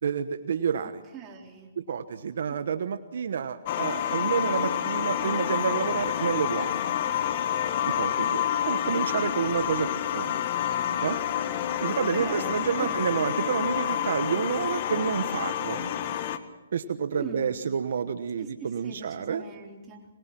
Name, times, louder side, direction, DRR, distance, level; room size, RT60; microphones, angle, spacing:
voice 1, 0.0-1.0 1.8-6.7 8.0-10.3 11.0-11.2 11.8-15.9 16.7-19.5, right 7 dB, 65° right, 10 dB, 1.2 m, -29 dB
voice 2, 0.8-1.7 12.0-13.1 17.1-17.6 18.4-20.1, right 5 dB, 20° right, 0 dB, 3.8 m, -41 dB
sound 1, 3.7-16.4, left 10 dB, 40° left, 1.6 m, -28 dB
25.5 x 22.0 x 6.1 m, 1.1 s
hypercardioid pair, 150°, 0 cm